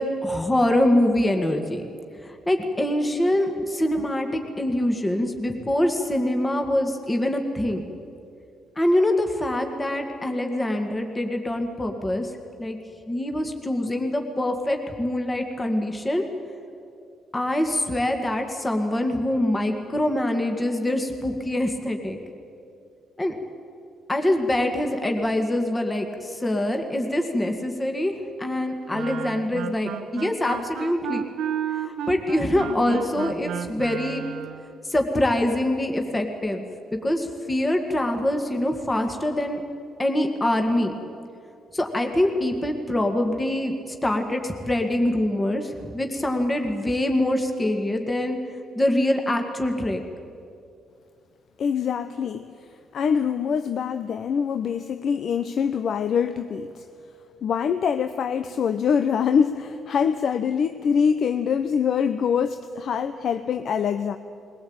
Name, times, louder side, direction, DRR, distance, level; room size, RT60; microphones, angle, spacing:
voice 1, 0.0-1.8 2.5-7.9 8.8-12.3 12.6-12.8 13.1-16.2 17.3-22.2 23.2-23.3 24.1-28.1 28.4-31.2 31.8-34.2 34.9-36.6 36.9-39.6 40.0-40.9 41.7-43.7 44.0-48.4 48.7-50.0, left 1 dB, 20° left, 4 dB, 2.1 m, -24 dB
Wind instrument woodwind instrument, 28.9-34.7, right 9 dB, 85° right, 1.1 m, -32 dB
voice 2, 51.6-52.5 52.9-56.8 57.4-64.2, left 7 dB, 60° left, 10 dB, 0.7 m, -24 dB
21.5 x 17.0 x 8.8 m, 2.5 s
cardioid pair, 90°, 0 cm